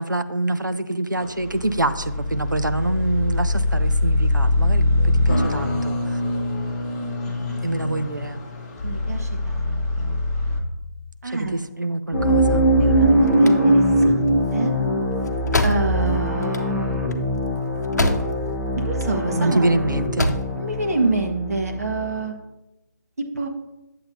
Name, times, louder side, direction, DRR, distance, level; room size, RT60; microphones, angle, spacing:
voice 1, 0.0-6.2 7.6-8.4 11.3-12.7 19.3-20.3, right 2 dB, 85° right, 10 dB, 0.6 m, -25 dB
sound 1, 1.2-10.6, left 2 dB, 20° left, 1.0 m, -23 dB
voice 2, 7.2-7.6 8.8-10.2 11.2-11.5 12.8-14.7 15.6-17.0 18.7-19.8 20.6-22.3 23.3-23.5, right 3 dB, 55° right, 3 dB, 1.4 m, -27 dB
sound 2, 12.1-22.1, right 1 dB, 5° right, 0.8 m, -21 dB
sound 3, 13.0-18.6 18.9-19.6 20.0-20.6, left 1 dB, 60° left, 0.8 m, -27 dB
9.3 x 7.6 x 2.7 m, 0.99 s
figure-of-eight pair, 150°, 10 cm